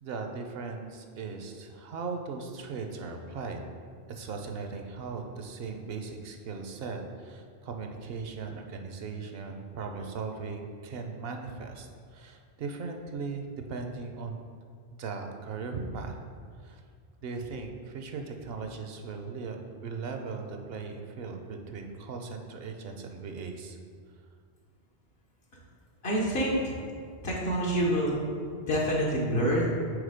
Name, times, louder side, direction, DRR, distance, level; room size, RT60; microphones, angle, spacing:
voice 1, 0.0-3.6 4.1-14.5 15.0-16.2 16.6-16.8 17.2-19.6 19.8-23.8, right 4 dB, 70° right, 4 dB, 0.8 m, -38 dB
voice 2, 26.0-26.8 27.2-28.2 28.6-29.7, equal, 75° left, -4 dB, 1.1 m, -27 dB
4.9 x 3.9 x 5.0 m, 2.1 s
omnidirectional pair, 1.0 m